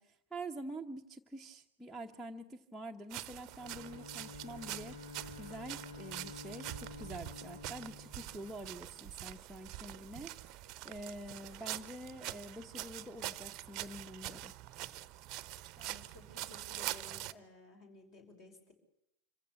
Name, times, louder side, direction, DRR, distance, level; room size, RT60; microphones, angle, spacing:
voice 1, 0.0-5.0 5.4-14.5, right 1 dB, ahead, -2 dB, 1.0 m, -47 dB
sound 1, 3.1-17.3, right 15 dB, 40° right, 0.8 m, -45 dB
Bowed string instrument, 3.5-9.1, left 4 dB, 65° left, 1.8 m, -51 dB
voice 2, 15.8-18.7, left 2 dB, 40° left, 5 dB, 5.6 m, -56 dB
26.0 x 15.5 x 8.5 m, 0.78 s
figure-of-eight pair, 90°, 0 cm